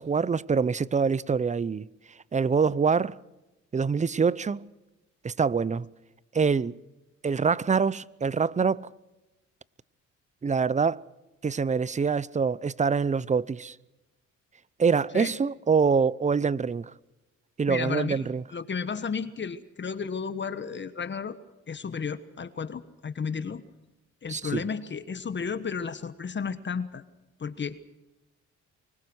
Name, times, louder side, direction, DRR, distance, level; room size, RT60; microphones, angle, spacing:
voice 1, 0.0-1.9 2.3-3.2 3.7-4.6 5.2-5.9 6.3-6.8 7.2-8.9 10.4-11.0 11.4-13.7 14.8-16.9 17.6-18.4 24.3-24.6, right 5 dB, 25° right, 0.7 m, -25 dB
voice 2, 17.7-18.3 18.5-21.4 21.7-23.6 24.2-27.0 27.4-27.8, left 6 dB, 35° left, 1.3 m, -33 dB
24.5 x 21.0 x 6.2 m
cardioid pair, 90°, 30 cm